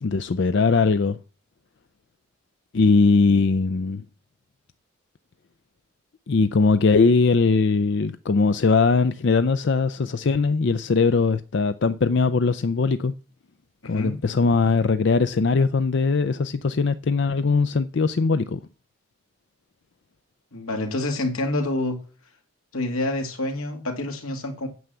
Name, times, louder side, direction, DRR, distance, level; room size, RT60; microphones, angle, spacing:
voice 1, 0.0-1.2 2.7-4.0 6.3-13.1 13.8-18.6, left 4 dB, 55° left, 0.5 m, -20 dB
voice 2, 13.8-14.1 20.5-22.0 22.7-24.7, left 2 dB, 85° left, 2.4 m, -27 dB
9.4 x 7.7 x 6.9 m
head